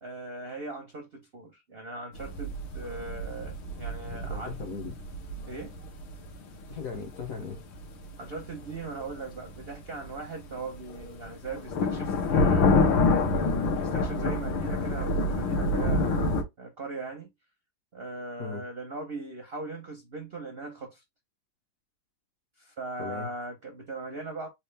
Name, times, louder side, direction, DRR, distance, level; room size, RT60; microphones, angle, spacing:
voice 1, 0.0-4.6 5.4-5.8 8.2-13.1 13.7-16.3 16.6-17.3 17.9-21.0 22.6-24.5, right 3 dB, 65° right, 0.6 m, -39 dB
sound 1, 2.2-16.4, left 3 dB, 75° left, 1.7 m, -27 dB
voice 2, 4.1-4.9 6.7-7.6 18.4-18.6 23.0-23.3, left 5 dB, 60° left, 0.9 m, -37 dB
4.3 x 2.4 x 3.2 m
omnidirectional pair, 2.2 m